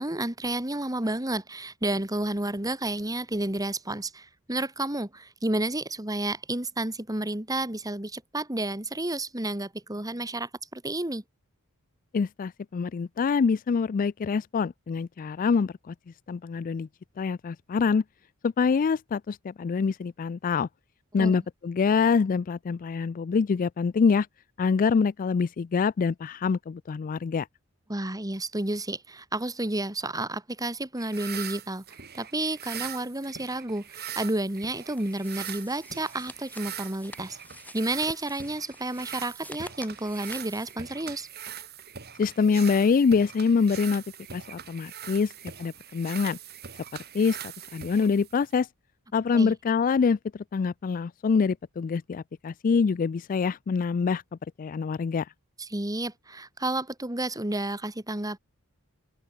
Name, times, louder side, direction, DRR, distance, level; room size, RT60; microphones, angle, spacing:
voice 1, 0.0-11.2 21.2-21.4 27.9-31.8 32.1-37.4 37.7-41.3 49.3-49.5 55.6-58.4, right 1 dB, 15° right, 2.4 m, -31 dB
voice 2, 12.1-15.9 16.3-16.9 17.2-18.0 18.4-20.7 21.1-24.3 24.6-27.5 42.2-44.0 44.3-45.3 45.6-46.4 47.1-47.4 47.7-48.7 49.1-50.2 50.5-54.2 54.6-55.3, left 5 dB, 40° left, 0.3 m, -25 dB
sound 1, 31.0-48.6, right 9 dB, 50° right, 5.7 m, -42 dB
sound 2, 34.9-40.8, left 2 dB, 10° left, 5.9 m, -49 dB
head